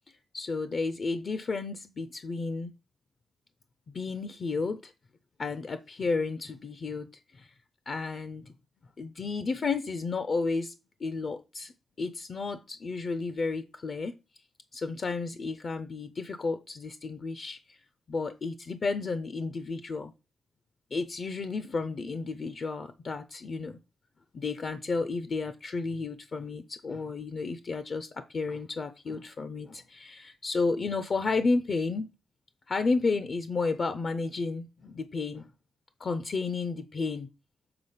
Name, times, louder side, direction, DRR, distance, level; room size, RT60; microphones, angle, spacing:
voice 1, 0.3-2.7 3.9-4.9 5.4-7.1 7.3-7.5 7.9-8.5 9.0-10.7 11.0-11.7 12.0-14.1 14.7-17.8 18.1-20.1 20.9-23.8 24.3-32.1 32.7-35.5 36.0-37.3, left 4 dB, 45° left, 0.5 m, -32 dB
6.8 x 3.9 x 5.5 m
wide cardioid pair, 125°, 0 cm